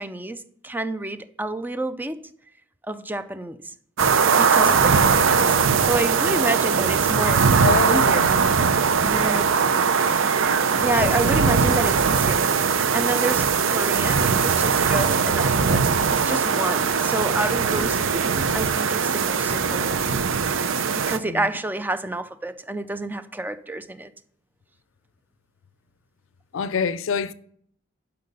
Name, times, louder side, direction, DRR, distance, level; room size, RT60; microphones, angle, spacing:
voice 1, 0.0-2.3 2.8-3.7 4.3-5.6 5.8-7.5 7.9-8.4 9.0-9.5 10.8-12.5 12.9-15.8 16.1-20.1 20.9-24.1, right 2 dB, 10° right, 0.4 m, -29 dB
sound 1, 4.0-21.2, right 5 dB, 80° right, 0.6 m, -20 dB
voice 2, 7.6-8.3 21.2-21.5 26.5-27.3, left 5 dB, 85° left, 0.5 m, -25 dB
10.5 x 5.7 x 5.3 m
head